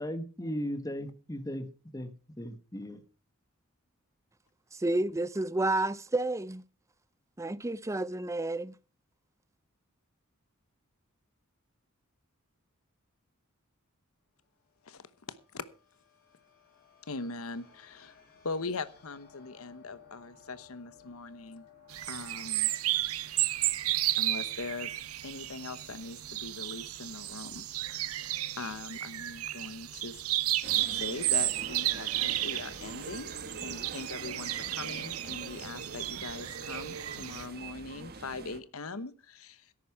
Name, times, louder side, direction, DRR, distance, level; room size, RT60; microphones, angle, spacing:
voice 1, 0.0-1.7 1.9-3.0, equal, 15° left, 1.4 m, -37 dB
voice 2, 4.7-6.6 7.4-8.7, right 2 dB, 15° right, 0.5 m, -30 dB
sound 1, 14.3-24.6, left 6 dB, 45° left, 7.0 m, -60 dB
voice 3, 14.8-15.6 17.1-18.2 18.4-21.7 22.1-22.7 24.2-24.9 25.2-28.2 28.6-30.2 30.9-33.3 33.6-39.7, left 3 dB, 80° left, 1.0 m, -41 dB
sound 2, 21.9-37.5, right 15 dB, 85° right, 0.7 m, -33 dB
sound 3, 30.6-38.6, right 4 dB, 45° right, 1.5 m, -45 dB
13.5 x 11.0 x 4.8 m
head